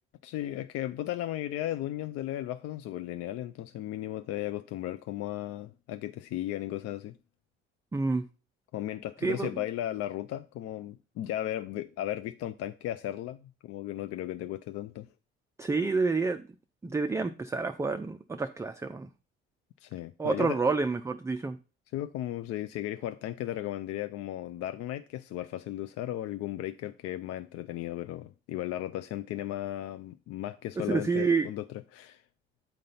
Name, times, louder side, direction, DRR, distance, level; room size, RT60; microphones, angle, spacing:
voice 1, 0.2-7.2 8.7-15.1 19.8-20.6 21.9-32.2, left 13 dB, 50° left, 0.4 m, -35 dB
voice 2, 7.9-8.2 9.2-9.5 15.6-16.4 16.8-19.1 20.2-21.6 30.8-31.5, right 4 dB, 10° right, 0.4 m, -28 dB
8.7 x 3.8 x 5.5 m
figure-of-eight pair, 50°, 32 cm